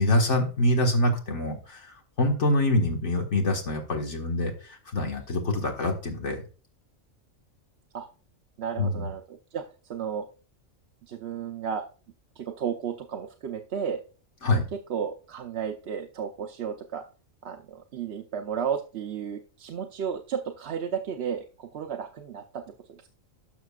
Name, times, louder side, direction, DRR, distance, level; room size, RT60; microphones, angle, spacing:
voice 1, 0.0-1.6 2.2-4.5 4.9-6.4 8.8-9.1 14.4-14.6, left 1 dB, 60° left, 2 dB, 1.9 m, -24 dB
voice 2, 8.6-10.3 11.1-11.9 12.4-14.0 14.7-17.0 17.4-22.6 22.9-23.0, right 7 dB, 60° right, 3 dB, 0.9 m, -33 dB
12.5 x 6.2 x 2.4 m, 0.37 s
omnidirectional pair, 1.4 m